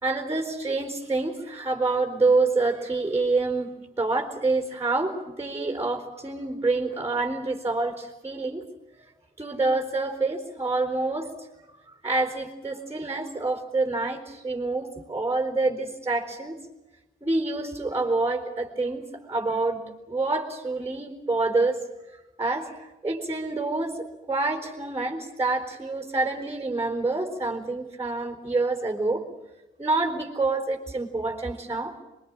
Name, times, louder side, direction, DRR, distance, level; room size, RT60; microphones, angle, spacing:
voice 1, 0.0-8.6 9.4-11.3 11.9-16.6 17.2-21.8 22.4-24.0 24.3-29.2 29.8-31.9, right 3 dB, 10° right, 4 dB, 4.1 m, -27 dB
23.5 x 22.5 x 8.8 m, 1.0 s
cardioid pair, 90°, 20 cm